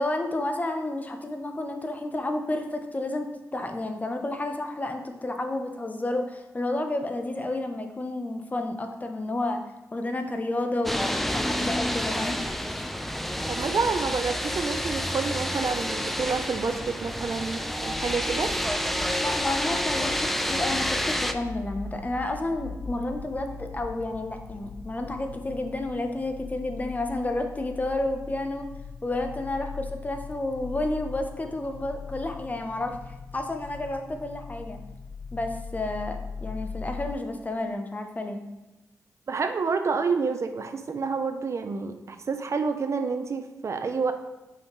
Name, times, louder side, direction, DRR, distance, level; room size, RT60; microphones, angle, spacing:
voice 1, 0.0-3.3 3.5-9.6 9.9-12.4 19.2-28.7 29.0-33.0 33.3-34.8 35.3-38.4, left 2 dB, 25° left, 5 dB, 0.7 m, -31 dB
sound 1, 10.9-21.3, equal, 5° left, 0.4 m, -29 dB
voice 2, 13.5-18.6 39.3-44.1, right 4 dB, 50° right, 8 dB, 0.5 m, -28 dB
sound 2, 17.8-37.1, left 5 dB, 80° left, 0.4 m, -41 dB
5.6 x 5.5 x 3.1 m, 1.1 s
cardioid pair, 80°, 6 cm